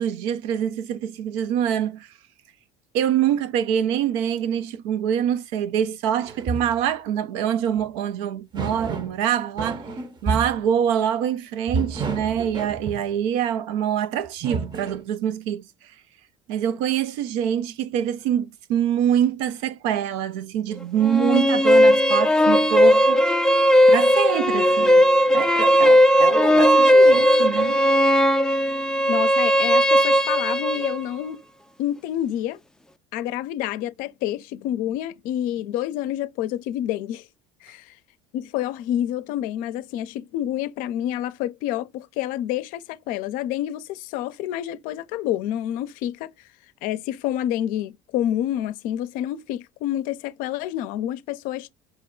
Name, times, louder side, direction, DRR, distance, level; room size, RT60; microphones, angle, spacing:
voice 1, 0.0-2.1 2.9-9.8 10.2-15.7 16.5-23.3 23.9-27.8, right 9 dB, 80° right, 0.5 m, -25 dB
sound 1, 6.2-6.8 7.8-7.9 8.5-9.2 9.6-10.6 11.7-13.1 14.2-15.0, right 4 dB, 30° right, 0.7 m, -30 dB
sound 2, 21.0-31.0, equal, 5° left, 0.4 m, -17 dB
voice 2, 29.1-31.4 31.8-32.6 33.1-37.3 37.6-37.9 38.3-46.3 46.8-51.7, left 12 dB, 70° left, 0.5 m, -28 dB
5.4 x 2.3 x 3.7 m
supercardioid pair, 95°, 15 cm